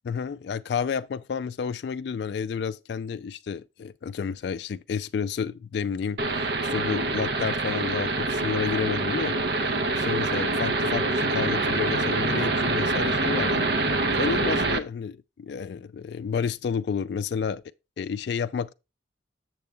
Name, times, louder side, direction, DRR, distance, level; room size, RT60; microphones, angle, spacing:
voice 1, 0.1-9.4 9.9-13.7 14.2-17.6 18.0-18.7, left 6 dB, 60° left, 0.3 m, -30 dB
sound 1, 6.2-14.8, right 2 dB, 60° right, 0.7 m, -25 dB
7.7 x 6.9 x 3.3 m
head